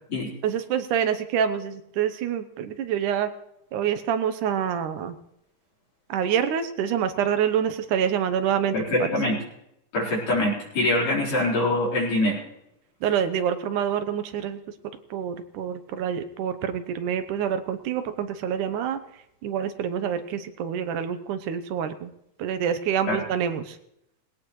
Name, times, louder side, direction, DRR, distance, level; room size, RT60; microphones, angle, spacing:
voice 1, 0.4-3.3 3.7-5.1 6.1-8.8 13.0-14.6 15.1-19.0 19.4-22.1 22.4-23.8, right 8 dB, 80° right, 9 dB, 2.4 m, -26 dB
voice 2, 8.7-9.4 9.9-12.4 23.1-23.2, left 1 dB, 90° left, -7 dB, 5.7 m, -24 dB
20.0 x 17.0 x 3.2 m, 0.81 s
omnidirectional pair, 3.6 m